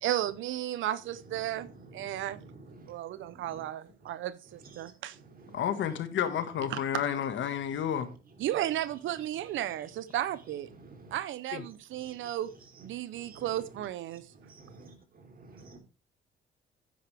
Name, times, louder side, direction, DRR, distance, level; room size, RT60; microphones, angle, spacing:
voice 1, 0.0-2.4 2.9-5.2 6.7-7.0 8.4-10.7 11.1-12.5 12.8-14.3, right 12 dB, 75° right, 0.6 m, -34 dB
voice 2, 2.0-2.9 5.4-5.6 10.8-11.0 12.8-12.9 13.2-13.5 14.6-14.9 15.5-15.8, right 3 dB, 45° right, 3.4 m, -50 dB
voice 3, 5.5-8.1 11.5-11.6, left 9 dB, 70° left, 1.7 m, -31 dB
9.6 x 9.5 x 3.4 m
cardioid pair, 90°, 20 cm